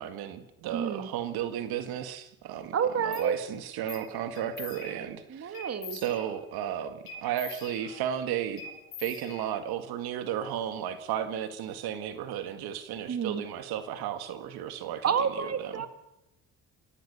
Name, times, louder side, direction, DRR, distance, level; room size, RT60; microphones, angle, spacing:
voice 1, 0.0-5.6 5.9-8.6 9.0-15.8, right 10 dB, 75° right, 9 dB, 1.9 m, -34 dB
voice 2, 0.7-1.1 2.7-3.4 5.3-6.0 13.1-13.4 15.0-15.9, right 7 dB, 40° right, 10 dB, 2.0 m, -29 dB
sound 1, 3.1-3.3 3.9-4.1 4.4-5.2 5.5-6.6 7.1-8.2 8.6-9.8, left 5 dB, 65° left, 6.5 m, -44 dB
26.0 x 16.5 x 6.9 m, 0.91 s
supercardioid pair, 80°, 37 cm